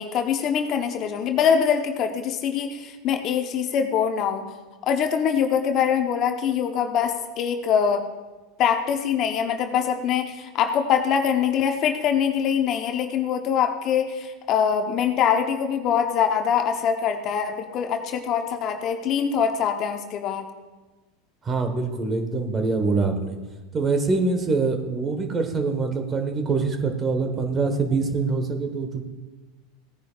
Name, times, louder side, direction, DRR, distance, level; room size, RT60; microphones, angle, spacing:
voice 1, 0.0-4.5 4.8-8.0 8.6-20.5, left 7 dB, 45° left, 6 dB, 1.0 m, -23 dB
voice 2, 21.4-23.4 23.7-29.0, right 4 dB, 25° right, 6 dB, 1.4 m, -24 dB
17.0 x 10.0 x 2.5 m, 1.2 s
hypercardioid pair, 85°, 0 cm